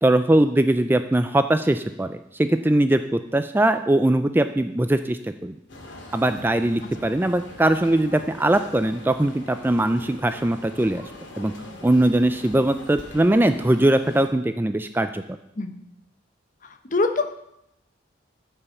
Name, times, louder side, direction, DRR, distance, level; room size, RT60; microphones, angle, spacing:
voice 1, 0.0-5.6 6.1-11.0 11.4-11.5 11.8-15.2, right 1 dB, 10° right, 9 dB, 0.3 m, -21 dB
sound 1, 5.7-14.3, left 1 dB, 75° left, 2.4 m, -42 dB
voice 2, 16.9-17.3, left 3 dB, 40° left, 6 dB, 1.0 m, -23 dB
14.0 x 5.6 x 7.1 m, 0.82 s
head